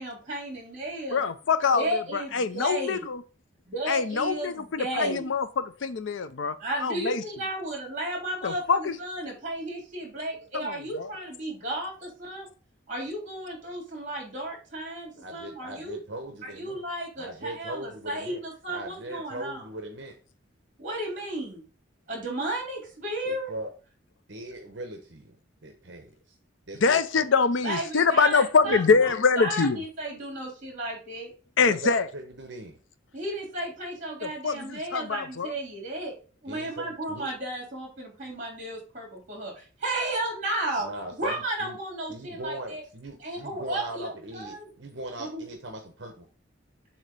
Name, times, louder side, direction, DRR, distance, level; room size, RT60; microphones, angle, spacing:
voice 1, 0.0-1.2 1.7-3.1 3.6-5.3 6.6-12.5 12.9-16.0 16.4-19.6 20.8-21.7 22.1-23.5 27.6-31.3 33.1-36.2 36.4-42.8 43.2-44.7 45.3-45.4, right 1 dB, 40° right, -1 dB, 3.4 m, -34 dB
voice 2, 1.1-3.2 3.9-6.5 6.8-7.2 8.4-9.0 10.5-11.1 26.8-29.8 31.6-32.0 34.2-35.5, left 5 dB, 70° left, 13 dB, 0.5 m, -24 dB
voice 3, 15.2-16.8 17.2-18.4 18.7-20.2 23.2-23.7 24.3-25.4 25.6-26.3 26.7-27.3 28.6-29.0 31.6-32.8 36.5-37.3 40.8-41.8 42.1-46.3, right 1 dB, 60° right, 4 dB, 1.0 m, -39 dB
7.3 x 2.8 x 5.3 m, 0.36 s
head